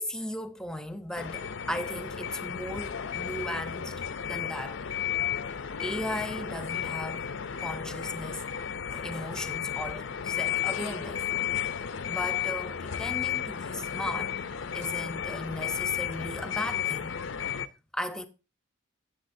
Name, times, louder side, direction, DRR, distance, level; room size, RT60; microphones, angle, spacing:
voice 1, 0.0-3.9 4.2-4.8 5.8-7.3 7.6-8.4 8.9-11.3 12.1-14.4 14.7-17.1 17.9-18.3, equal, 5° left, 0.7 m, -36 dB
sound 1, 1.2-17.7, left 9 dB, 65° left, 0.6 m, -33 dB
17.5 x 7.2 x 2.7 m
head